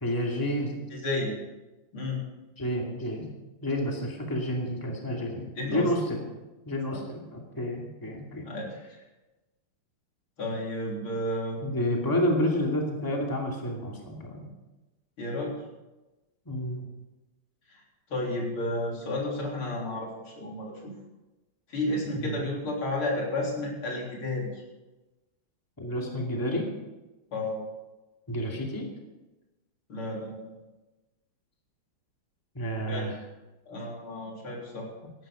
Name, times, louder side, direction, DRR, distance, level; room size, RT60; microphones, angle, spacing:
voice 1, 0.0-0.8 2.6-3.3 3.6-6.2 6.6-8.5 11.6-14.5 16.5-16.9 22.1-22.4 25.8-26.7 28.3-28.9 32.5-33.2 35.0-35.1, equal, 10° left, 0 dB, 2.2 m, -30 dB
voice 2, 0.9-1.4 1.9-2.2 5.6-5.9 6.9-7.0 8.5-8.7 10.4-11.6 15.2-15.5 17.7-17.8 18.1-20.9 21.7-24.6 27.3-27.7 29.9-30.5 32.9-33.1 33.7-34.9, left 1 dB, 75° left, -2 dB, 4.3 m, -32 dB
16.0 x 11.5 x 5.1 m, 1.1 s
omnidirectional pair, 2.3 m